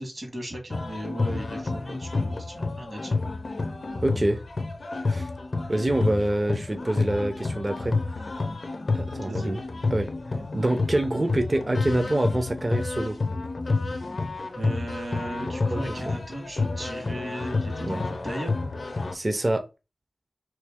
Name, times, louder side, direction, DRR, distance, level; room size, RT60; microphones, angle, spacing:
voice 1, 0.0-3.1 9.2-9.5 14.5-18.7, right 1 dB, 60° right, 1.8 m, -36 dB
sound 1, 0.7-19.1, left 3 dB, 65° left, 0.5 m, -29 dB
voice 2, 4.0-4.4 5.1-5.3 5.7-7.9 8.9-9.6 9.9-10.1 10.5-13.2 15.7-15.9 17.8-18.0 19.1-19.7, right 1 dB, 35° right, 0.6 m, -26 dB
3.1 x 3.0 x 3.5 m
wide cardioid pair, 65°, 0 cm